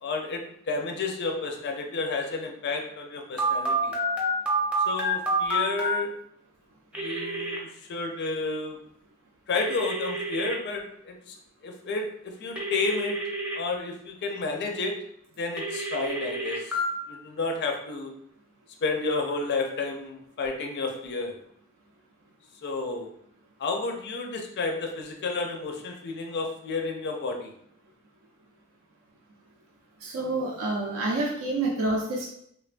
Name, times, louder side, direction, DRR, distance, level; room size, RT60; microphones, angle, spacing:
voice 1, 0.0-3.9 4.9-6.1 6.9-8.8 9.5-11.4 11.6-13.2 13.5-15.0 15.4-16.8 17.1-18.1 18.8-21.3 22.6-23.1 23.6-27.5, left 3 dB, 50° left, 3 dB, 0.4 m, -31 dB
Telephone, 3.4-5.9 6.9-7.6 9.5-10.6 12.6-13.6 15.6-16.8, right 1 dB, 5° right, 0.6 m, -28 dB
voice 2, 30.0-32.3, right 2 dB, 70° right, -2 dB, 0.5 m, -28 dB
3.2 x 2.2 x 2.4 m, 0.70 s
head